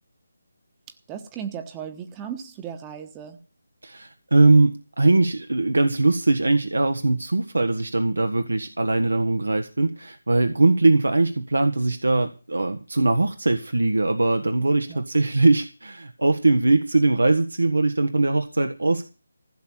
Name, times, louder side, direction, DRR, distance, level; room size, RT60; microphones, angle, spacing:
voice 1, 1.1-3.4 14.9-15.0, right 8 dB, 15° right, 6 dB, 1.3 m, -36 dB
voice 2, 3.8-19.0, right 2 dB, 75° right, 7 dB, 1.5 m, -21 dB
15.5 x 7.1 x 8.3 m, 0.34 s
figure-of-eight pair, 155°, 0 cm